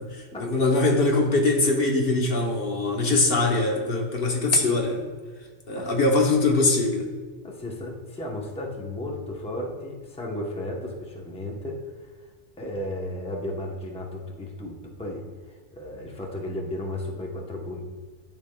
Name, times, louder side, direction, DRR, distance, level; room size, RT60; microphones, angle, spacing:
voice 1, 0.0-5.1 5.7-7.1, left 2 dB, 55° left, 1 dB, 1.0 m, -22 dB
voice 2, 7.4-12.3 12.6-17.8, left 1 dB, 5° left, -1 dB, 0.7 m, -34 dB
11.5 x 5.2 x 2.2 m, 1.5 s
omnidirectional pair, 1.2 m